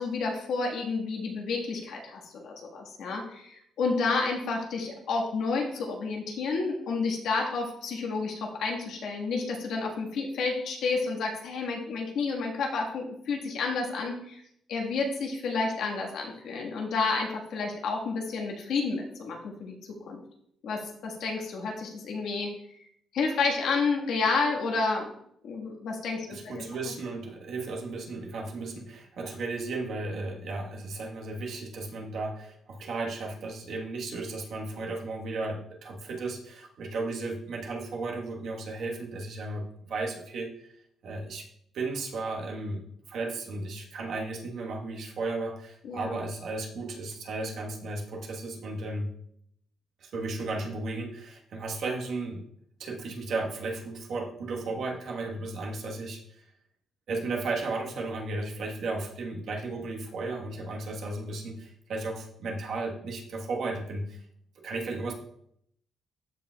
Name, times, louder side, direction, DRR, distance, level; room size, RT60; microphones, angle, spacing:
voice 1, 0.0-14.4 14.7-19.7 20.1-20.2 20.6-22.5 23.1-25.1 25.4-26.6 45.8-46.1, left 4 dB, 65° left, 0 dB, 1.6 m, -30 dB
voice 2, 26.3-40.7 41.0-41.5 41.7-49.1 50.0-52.4 52.8-56.4 57.1-64.2 64.6-65.1, right 3 dB, 55° right, 0 dB, 1.3 m, -34 dB
14.0 x 5.0 x 2.3 m, 0.71 s
cardioid pair, 165°, 0 cm